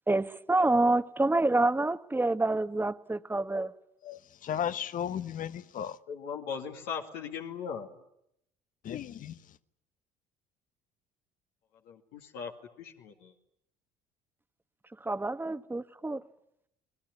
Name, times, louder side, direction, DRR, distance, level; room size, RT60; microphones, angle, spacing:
voice 1, 0.1-3.7 15.0-16.2, right 2 dB, 10° right, 1.2 m, -27 dB
voice 2, 4.0-6.0 8.8-9.4, left 9 dB, 55° left, 1.2 m, -35 dB
voice 3, 6.1-7.9 11.8-12.5 12.8-13.3, left 6 dB, 75° left, 2.3 m, -38 dB
29.0 x 20.5 x 9.6 m
hypercardioid pair, 65°, 17 cm